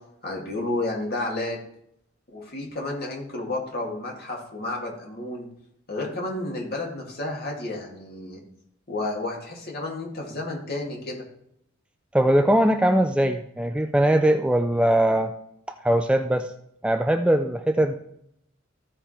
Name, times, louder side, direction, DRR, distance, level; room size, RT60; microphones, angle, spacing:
voice 1, 0.2-1.6 2.3-5.5 5.9-8.4 8.9-11.2, left 2 dB, 50° left, -1 dB, 2.5 m, -31 dB
voice 2, 12.1-15.3 15.8-16.5 16.8-17.9, right 1 dB, 5° right, 6 dB, 0.4 m, -21 dB
14.5 x 5.0 x 4.4 m, 0.73 s
head